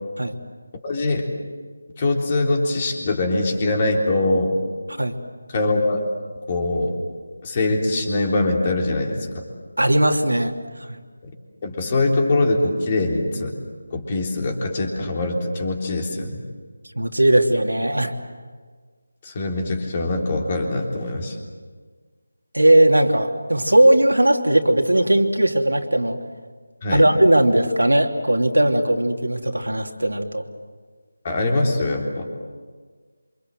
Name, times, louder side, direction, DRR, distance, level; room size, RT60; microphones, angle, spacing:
voice 1, 0.8-1.3 2.0-4.6 5.5-6.0 6.5-7.0 7.4-9.4 11.6-13.5 13.9-16.4 19.2-21.4 26.8-27.0 31.2-32.3, left 2 dB, 25° left, 1 dB, 3.5 m, -22 dB
voice 2, 9.8-10.5 10.9-11.0 17.0-18.1 22.5-26.2 26.9-30.4, right 1 dB, 70° right, 3 dB, 2.9 m, -18 dB
28.0 x 26.0 x 7.9 m, 1.5 s
figure-of-eight pair, 160°, 0 cm